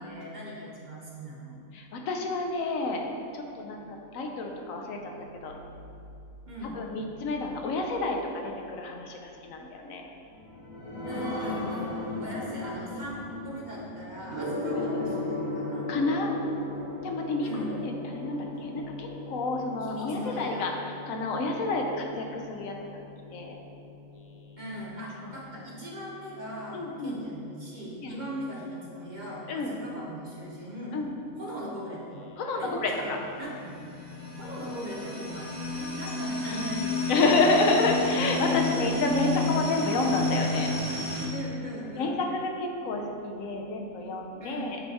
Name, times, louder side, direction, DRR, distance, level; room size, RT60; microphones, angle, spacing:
voice 1, 0.0-1.6 6.5-6.8 11.1-15.8 17.4-17.8 19.9-20.7 24.6-31.0 31.4-33.5 34.4-37.7 41.3-42.2 44.4-44.7, equal, 35° right, -5 dB, 1.0 m, -39 dB
voice 2, 1.7-3.0 3.3-5.9 6.7-10.0 11.1-11.2 12.2-12.3 14.8-15.2 15.9-16.3 17.0-22.8 23.3-23.5 25.2-25.4 26.7-27.2 28.0-28.2 29.5-29.7 30.9-31.1 32.4-33.2 36.4-36.6 37.1-40.7 42.0-44.8, left 2 dB, 75° left, 2 dB, 1.1 m, -29 dB
sound 1, 10.2-17.3 17.7-17.8 18.2-18.3, left 1 dB, 50° left, 1.9 m, -38 dB
Gong, 14.3-33.3, left 2 dB, 75° right, 1.7 m, -39 dB
sound 2, 32.8-41.3, left 2 dB, 20° right, 0.6 m, -31 dB
8.5 x 3.5 x 4.1 m, 2.6 s
omnidirectional pair, 1.4 m